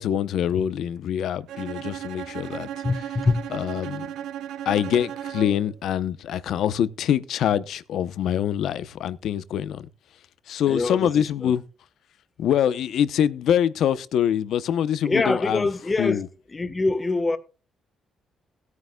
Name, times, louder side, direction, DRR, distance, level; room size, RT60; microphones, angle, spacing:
voice 1, 0.0-3.2 3.5-4.1 4.7-9.9 10.5-11.6 12.4-15.7 16.0-16.3, left 9 dB, 75° left, 0.8 m, -25 dB
Bowed string instrument, 1.5-5.7, right 10 dB, 85° right, 0.8 m, -35 dB
voice 2, 2.8-3.4 10.7-11.5 15.0-16.2 16.5-17.4, left 3 dB, 25° left, 1.3 m, -24 dB
17.0 x 9.5 x 2.3 m
cardioid pair, 90°, 0 cm